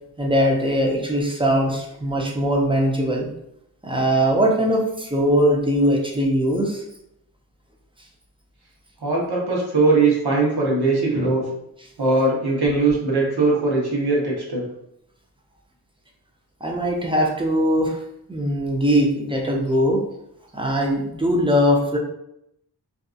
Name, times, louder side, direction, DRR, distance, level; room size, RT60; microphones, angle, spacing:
voice 1, 0.2-3.3 3.8-6.8 16.6-18.0 18.3-20.0 20.5-22.0, equal, 10° right, -1 dB, 0.6 m, -20 dB
voice 2, 9.0-11.4 12.0-14.7, right 3 dB, 65° right, -3 dB, 0.9 m, -20 dB
2.6 x 2.4 x 2.3 m, 0.79 s
wide cardioid pair, 45°, 42 cm